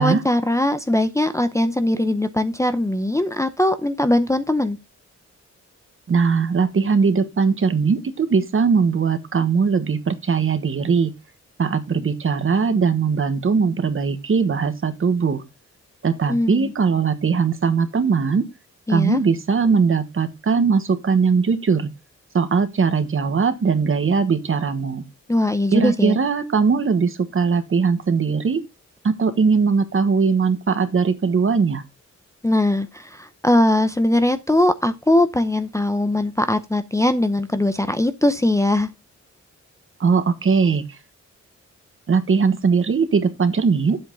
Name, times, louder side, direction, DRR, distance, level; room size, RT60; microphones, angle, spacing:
voice 1, 0.0-4.8 16.3-16.7 18.9-19.2 25.3-26.2 32.4-38.9, left 1 dB, 10° left, 0.6 m, -20 dB
voice 2, 6.1-11.1 11.6-15.4 16.0-18.5 18.9-21.9 22.3-25.0 25.7-28.6 29.0-31.8 40.0-40.8 42.1-44.0, right 5 dB, 45° right, 1.3 m, -20 dB
9.3 x 8.0 x 3.8 m
wide cardioid pair, 155°, 29 cm